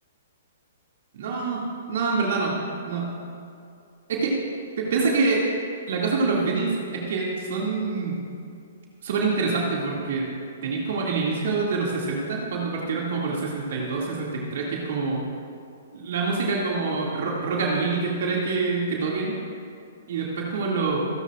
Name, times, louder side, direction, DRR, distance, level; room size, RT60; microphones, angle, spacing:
voice 1, 1.1-2.6 2.8-3.1 4.1-4.4 4.8-5.4 5.9-8.2 9.0-10.3 10.6-15.2 15.9-19.4 20.1-21.0, right 4 dB, 60° right, -3 dB, 2.2 m, -26 dB
26.5 x 11.0 x 2.5 m, 2.4 s
hypercardioid pair, 125°, 0 cm